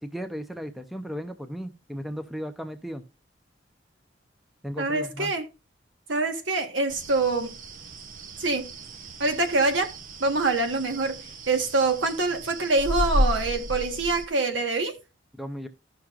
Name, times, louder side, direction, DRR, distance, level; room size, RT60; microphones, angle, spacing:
voice 1, 0.0-3.0 4.6-5.3 15.4-15.7, equal, ahead, 0.7 m, -35 dB
voice 2, 4.8-5.5 6.1-7.5 8.4-8.7 9.2-9.9 10.2-11.2 11.5-15.0, right 3 dB, 80° right, 1.5 m, -25 dB
sound 1, 6.9-14.3, equal, 45° right, 0.8 m, -33 dB
14.5 x 5.8 x 2.5 m
head